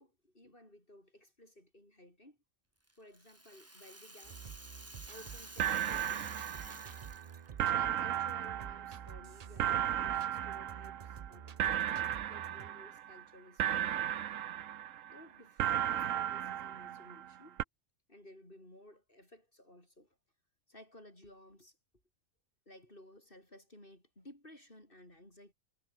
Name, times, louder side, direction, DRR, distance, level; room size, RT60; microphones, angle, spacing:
voice 1, 0.0-2.4 3.0-4.6 5.1-6.4 7.7-14.0 15.1-17.6 18.1-20.2 20.7-21.8 22.7-25.5, left 1 dB, 40° left, 7.2 m, -57 dB
Rattle (instrument), 2.9-7.6, right 1 dB, 10° right, 1.8 m, -51 dB
sound 1, 4.2-12.7, right 8 dB, 55° right, 0.4 m, -50 dB
sound 2, 5.2-5.3 5.6-7.2 7.6-11.3 11.6-13.2 13.6-15.2 15.6-17.3 17.6-17.7, right 10 dB, 70° right, 1.2 m, -35 dB
omnidirectional pair, 1.4 m